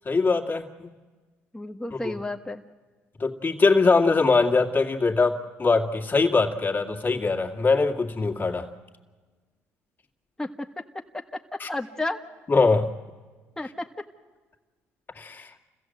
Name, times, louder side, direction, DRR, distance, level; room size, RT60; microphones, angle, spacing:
voice 1, 0.1-0.9 1.9-2.2 3.2-8.7 11.6-11.7 12.5-12.9 15.1-15.5, left 4 dB, 35° left, 3 dB, 2.3 m, -22 dB
voice 2, 1.5-2.6 10.4-10.7 11.1-11.2 11.5-12.2 13.6-13.9, left 2 dB, 10° left, 4 dB, 1.6 m, -32 dB
29.0 x 15.5 x 7.9 m, 1.4 s
supercardioid pair, 70°, 6 cm